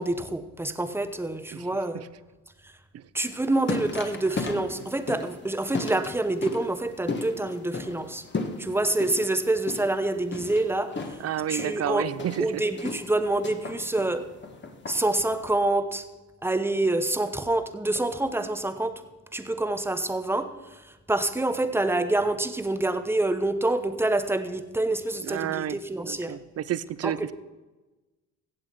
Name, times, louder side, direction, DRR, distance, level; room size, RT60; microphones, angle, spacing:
voice 1, 0.0-2.1 2.6-2.7 3.1-8.2 8.6-11.2 11.5-12.1 12.4-14.3 14.9-16.0 16.4-19.0 19.3-26.4 27.0-27.3, right 2 dB, 5° right, 10 dB, 0.9 m, -27 dB
sound 1, 3.2-15.5, left 3 dB, 30° left, 1.5 m, -36 dB
voice 2, 11.2-12.6 25.2-25.8 26.1-27.2, right 10 dB, 45° right, 18 dB, 0.6 m, -30 dB
15.5 x 7.8 x 4.5 m, 1.2 s
supercardioid pair, 80°, 34 cm